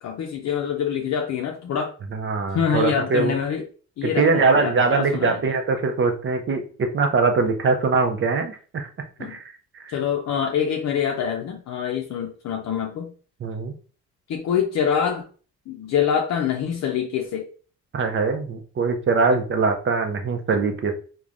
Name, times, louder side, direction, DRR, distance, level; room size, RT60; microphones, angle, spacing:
voice 1, 0.0-1.9 2.5-3.6 4.0-5.6 9.2-9.4 9.9-13.1 14.3-15.3 15.7-17.5, left 8 dB, 60° left, 1 dB, 0.5 m, -25 dB
voice 2, 2.1-3.3 4.0-8.9 9.2-9.4 9.8-9.9 13.4-13.7 17.9-21.0, right 4 dB, 40° right, 5 dB, 0.6 m, -22 dB
3.2 x 2.2 x 2.4 m, 0.39 s
cardioid pair, 90°, 30 cm